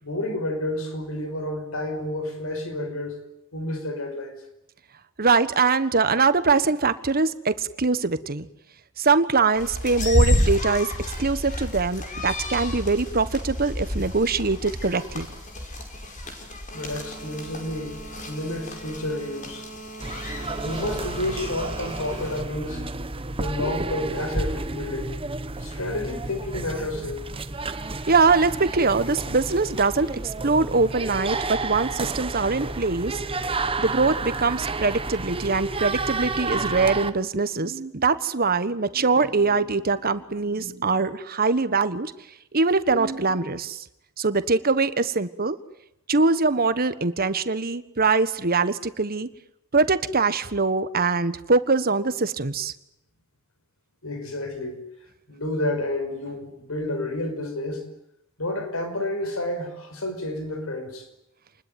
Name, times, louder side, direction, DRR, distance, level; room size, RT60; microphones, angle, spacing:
voice 1, 0.0-3.2 3.5-4.4 16.7-19.7 20.6-22.9 23.4-25.2 25.6-27.3 54.0-54.8 55.3-57.9 58.4-61.1, left 1 dB, 85° left, 7 dB, 5.5 m, -30 dB
voice 2, 5.2-8.5 9.0-10.9 11.2-15.3 28.1-30.1 30.4-33.2 33.8-42.1 42.5-43.8 44.2-45.6 46.1-49.3 49.7-52.7, right 4 dB, 45° right, 13 dB, 1.4 m, -22 dB
sound 1, 9.5-22.4, left 1 dB, 40° left, 5.3 m, -30 dB
sound 2, 20.0-37.1, right 3 dB, 25° right, 1.2 m, -31 dB
28.0 x 21.0 x 9.4 m, 0.83 s
head